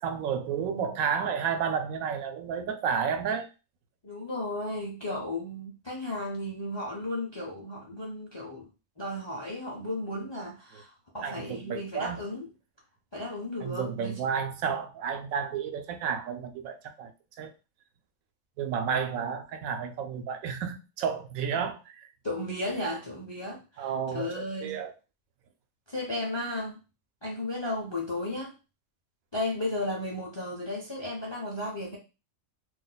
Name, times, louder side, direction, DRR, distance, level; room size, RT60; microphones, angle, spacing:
voice 1, 0.0-3.5 10.7-10.8 11.2-12.2 13.6-17.1 17.4-17.5 18.6-22.1 23.8-24.9, right 7 dB, 85° right, 1.0 m, -31 dB
voice 2, 4.0-8.7 9.0-12.5 13.1-14.2 22.2-24.8 25.9-26.8 27.2-28.5 29.3-32.0, left 1 dB, 35° left, 0.4 m, -34 dB
2.6 x 2.2 x 3.9 m
omnidirectional pair, 1.4 m